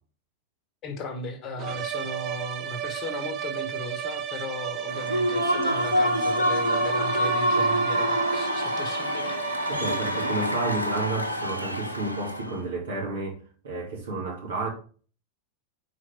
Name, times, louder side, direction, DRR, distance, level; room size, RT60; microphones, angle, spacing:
voice 1, 0.8-9.8, left 2 dB, 35° left, 1.2 m, -37 dB
sound 1, 1.6-10.8, right 10 dB, 35° right, 0.6 m, -34 dB
Human voice / Cheering / Applause, 4.9-12.5, equal, 85° left, 0.7 m, -26 dB
voice 2, 9.7-13.4 13.6-14.7, right 3 dB, 65° right, 2.3 m, -31 dB
4.7 x 4.6 x 4.4 m
figure-of-eight pair, 90°, 0 cm